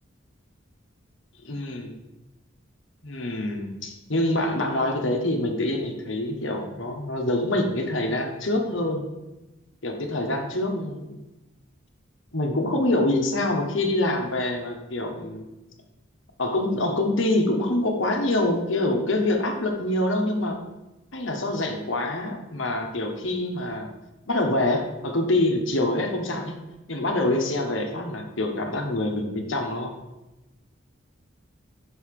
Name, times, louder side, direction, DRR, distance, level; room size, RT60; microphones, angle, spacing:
voice 1, 1.4-1.9 3.0-9.1 9.8-11.2 12.3-15.5 16.4-20.6 21.1-23.9 24.3-26.6 26.9-30.0, left 1 dB, 75° left, 3 dB, 1.3 m, -25 dB
5.7 x 5.6 x 6.6 m, 1.0 s
head